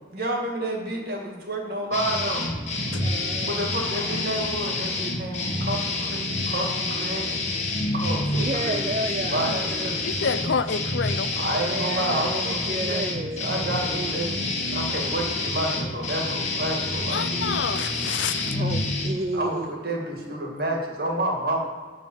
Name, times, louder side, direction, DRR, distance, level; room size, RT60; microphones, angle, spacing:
voice 1, 0.1-2.5 3.4-7.4 7.9-10.4 11.4-17.2 19.3-21.6, right 1 dB, 55° right, 0 dB, 2.1 m, -30 dB
sound 1, 1.9-19.1, left 2 dB, 35° left, 1.7 m, -28 dB
voice 2, 3.0-3.7 8.3-10.0 11.7-14.3 17.1-17.7 18.5-19.7, right 2 dB, 35° right, 6 dB, 0.4 m, -33 dB
voice 3, 10.1-11.4 17.1-18.6, left 6 dB, 80° left, 13 dB, 0.5 m, -28 dB
11.5 x 4.1 x 7.3 m, 1.5 s
head